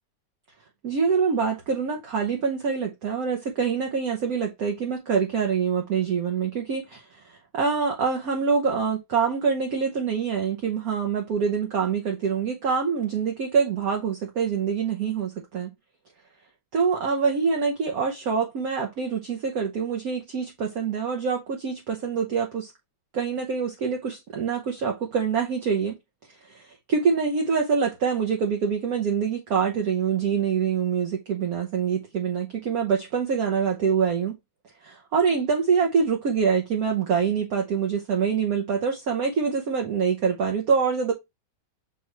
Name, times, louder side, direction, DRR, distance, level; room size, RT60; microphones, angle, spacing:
voice 1, 0.8-7.2 7.5-15.7 16.7-22.7 23.1-26.0 26.5-34.4 34.8-41.1, right 6 dB, 60° right, 1.2 m, -25 dB
7.2 x 2.4 x 3.0 m
omnidirectional pair, 1.9 m